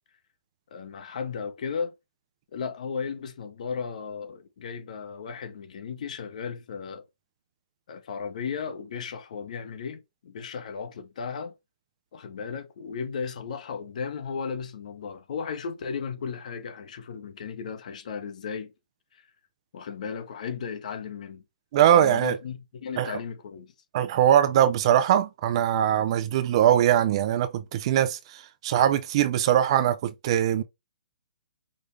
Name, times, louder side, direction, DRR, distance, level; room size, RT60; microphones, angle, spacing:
voice 1, 0.7-1.9 2.5-7.0 7.9-11.5 12.1-18.7 19.1-19.3 19.7-21.4 21.9-23.7, left 6 dB, 60° left, 1.3 m, -35 dB
voice 2, 21.7-22.4 23.0-23.2 23.9-30.6, right 10 dB, 40° right, 0.6 m, -22 dB
5.2 x 2.7 x 3.3 m
hypercardioid pair, 155°, 5 cm